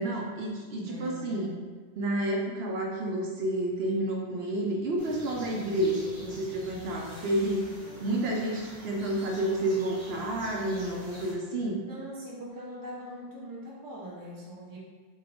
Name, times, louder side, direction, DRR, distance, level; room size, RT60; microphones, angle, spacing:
voice 1, 0.0-1.6 2.0-7.6 8.0-11.8, right 1 dB, 75° right, -1 dB, 0.8 m, -30 dB
voice 2, 0.7-1.5 7.8-8.2 11.9-14.8, equal, 20° right, -5 dB, 0.7 m, -42 dB
sound 1, 5.0-11.3, left 1 dB, 40° right, 1.1 m, -47 dB
3.6 x 2.4 x 3.4 m, 1.5 s
omnidirectional pair, 1.1 m